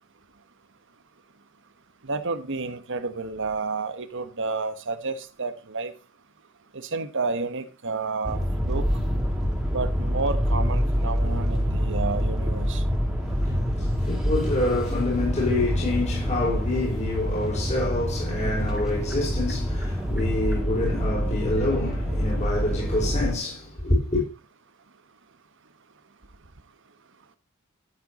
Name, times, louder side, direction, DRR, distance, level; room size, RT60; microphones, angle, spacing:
voice 1, 2.0-5.9 6.7-8.9 9.7-12.8, right 3 dB, 60° right, 1.2 m, -30 dB
sound 1, 8.2-23.3, equal, 5° right, 2.4 m, -26 dB
voice 2, 13.3-24.3, left 2 dB, 35° left, 5.5 m, -27 dB
13.5 x 7.8 x 4.2 m
head